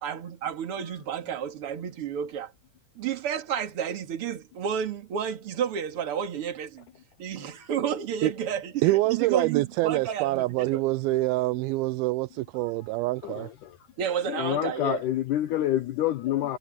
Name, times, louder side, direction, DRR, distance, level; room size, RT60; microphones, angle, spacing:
voice 1, 0.0-2.5 3.0-6.9 7.2-10.8 14.0-15.0, right 8 dB, 45° right, 2.4 m, -31 dB
voice 2, 8.8-13.5, right 18 dB, 80° right, 2.4 m, -25 dB
voice 3, 13.2-13.8 14.3-16.6, left 12 dB, 75° left, 1.9 m, -27 dB
omnidirectional pair, 4.6 m